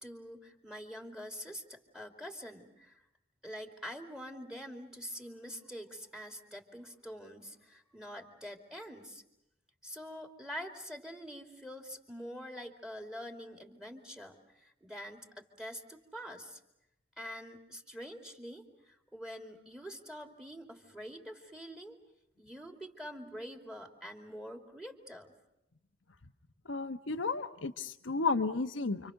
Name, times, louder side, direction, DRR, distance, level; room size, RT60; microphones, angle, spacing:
voice 1, 0.0-3.0 3.4-9.2 9.8-16.6 17.2-22.0 22.4-25.3, equal, 5° right, 4 dB, 2.9 m, -45 dB
voice 2, 26.7-29.1, left 4 dB, 85° left, 7 dB, 1.2 m, -33 dB
30.0 x 25.5 x 6.6 m, 0.86 s
head